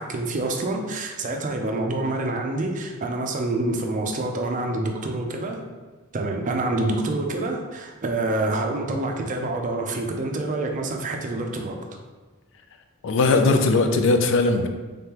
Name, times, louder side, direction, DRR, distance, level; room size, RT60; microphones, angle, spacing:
voice 1, 0.0-5.6 6.1-11.8, right 2 dB, 40° right, 3 dB, 0.5 m, -27 dB
voice 2, 13.0-14.7, left 3 dB, 65° left, 6 dB, 0.4 m, -19 dB
3.6 x 3.6 x 2.9 m, 1.3 s
head